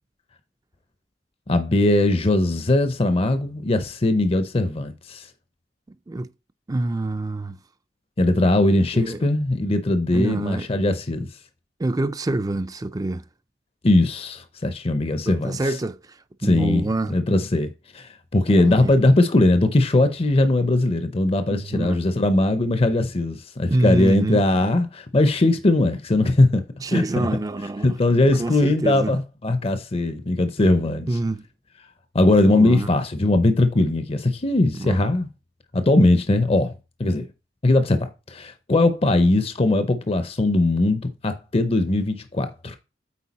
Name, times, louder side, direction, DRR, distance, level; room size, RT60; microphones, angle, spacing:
voice 1, 1.5-5.3 8.2-11.3 13.8-15.6 16.4-26.6 26.9-27.3 27.8-31.1 32.1-35.3 35.7-36.7 37.0-37.3 37.6-42.8, left 2 dB, 35° left, 0.6 m, -20 dB
voice 2, 6.7-7.6 8.9-9.3 10.1-10.7 11.8-13.2 15.3-17.2 18.5-18.9 21.5-22.0 23.7-24.4 26.8-28.0 28.4-29.2 31.1-31.5 32.5-32.9 34.7-35.1, right 2 dB, 20° right, 0.4 m, -26 dB
8.4 x 4.6 x 4.1 m
head